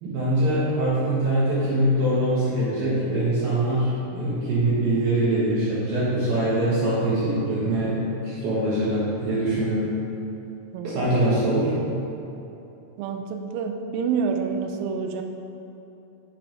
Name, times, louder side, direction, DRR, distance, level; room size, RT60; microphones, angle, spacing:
voice 1, 0.0-9.9 10.8-11.7, right 1 dB, 75° right, -9 dB, 2.3 m, -23 dB
voice 2, 13.0-15.2, right 6 dB, 90° right, 4 dB, 3.3 m, -28 dB
7.6 x 4.6 x 5.2 m, 2.9 s
omnidirectional pair, 6.0 m